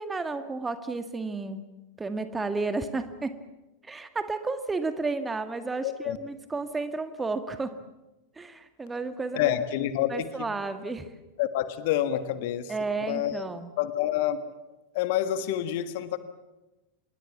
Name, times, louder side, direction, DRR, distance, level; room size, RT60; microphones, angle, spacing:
voice 1, 0.0-1.6 2.0-3.4 3.8-7.7 8.4-9.5 10.1-11.1 12.7-13.7, right 3 dB, 10° right, 9 dB, 1.8 m, -32 dB
voice 2, 5.8-6.2 9.3-10.6 11.4-12.7 13.0-13.4 13.8-14.4 14.9-16.2, left 12 dB, 50° left, 11 dB, 1.6 m, -28 dB
26.5 x 21.5 x 7.3 m, 1.0 s
figure-of-eight pair, 90°, 0 cm